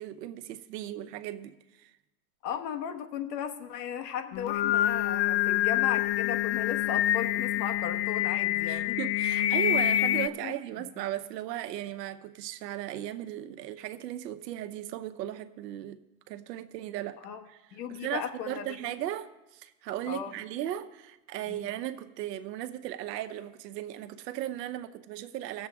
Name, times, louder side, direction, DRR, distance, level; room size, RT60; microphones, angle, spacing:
voice 1, 0.0-1.9 8.7-17.2 17.5-17.6 17.9-25.7, right 12 dB, 80° right, 0.9 m, -37 dB
voice 2, 2.4-9.0 9.3-9.6 10.3-10.5 17.2-17.4 17.7-18.9 20.1-20.3 21.5-21.7, left 8 dB, 75° left, 1.4 m, -36 dB
Singing, 4.3-10.3, left 13 dB, 50° left, 0.4 m, -26 dB
17.0 x 7.3 x 3.6 m
supercardioid pair, 115°, 49 cm